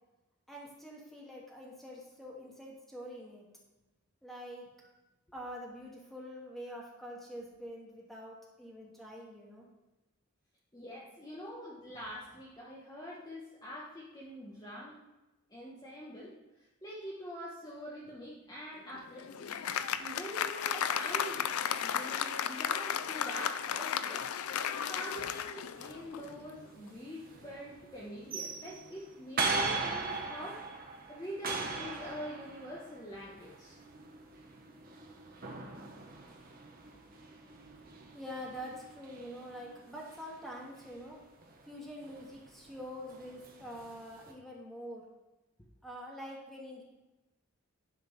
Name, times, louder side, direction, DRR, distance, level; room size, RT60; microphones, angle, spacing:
voice 1, 0.5-3.5 4.2-4.7 5.3-9.7 19.9-20.0 38.1-41.2 41.7-45.1 45.8-46.8, equal, ahead, -4 dB, 1.7 m, -45 dB
voice 2, 10.7-15.0 15.5-16.3 16.8-19.5 20.0-21.4 21.8-24.2 24.9-30.6 31.1-33.8, equal, 20° left, -6 dB, 1.1 m, -45 dB
Applause, 18.9-26.4, left 8 dB, 85° left, 0.5 m, -34 dB
sound 1, 25.7-44.3, right 3 dB, 40° right, 1.0 m, -41 dB
11.0 x 4.3 x 5.4 m, 1.0 s
head